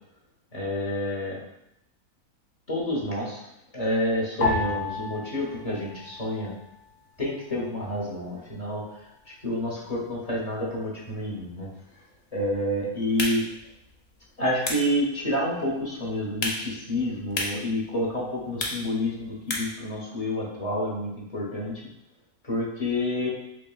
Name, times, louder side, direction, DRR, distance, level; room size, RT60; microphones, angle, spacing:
voice 1, 0.5-1.4 2.7-3.5 3.7-6.5 7.2-8.8 9.4-11.7 12.3-13.4 14.4-21.8 22.4-23.3, left 1 dB, 30° left, -5 dB, 0.8 m, -29 dB
sound 1, 4.4-6.9 7.2-8.1 8.7-9.1, left 3 dB, 90° left, 1.3 m, -32 dB
sound 2, 13.0-19.9, left 2 dB, 75° left, 0.3 m, -36 dB
5.9 x 2.1 x 2.3 m, 0.83 s
omnidirectional pair, 1.5 m